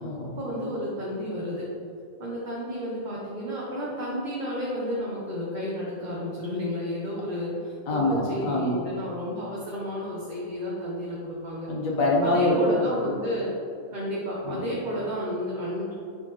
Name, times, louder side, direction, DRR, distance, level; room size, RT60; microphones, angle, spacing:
voice 1, 0.4-1.7 2.2-8.0 8.3-11.7 12.2-13.5 13.9-15.9, equal, 40° right, -6 dB, 1.0 m, -32 dB
voice 2, 7.9-8.8 11.7-12.7 13.0-13.1 14.4-14.7, left 1 dB, 85° left, -4 dB, 1.8 m, -24 dB
9.3 x 4.1 x 3.1 m, 2.5 s
omnidirectional pair, 1.4 m